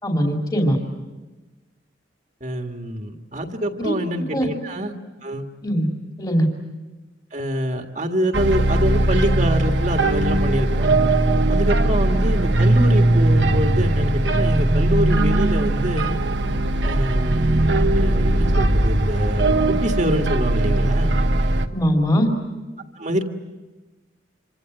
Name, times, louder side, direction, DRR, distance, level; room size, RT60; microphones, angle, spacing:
voice 1, 0.0-0.8 3.8-3.9 4.3-4.5 5.6-5.9 6.2-6.5 21.7-22.3, equal, 20° left, 1 dB, 2.7 m, -20 dB
voice 2, 2.4-4.9 5.2-5.5 7.3-11.0 11.5-16.2 16.8-21.2 23.0-23.2, equal, 40° right, 4 dB, 1.8 m, -25 dB
sound 1, 8.3-21.7, right 1 dB, 75° right, 1.3 m, -19 dB
27.5 x 25.5 x 7.8 m, 1.2 s
head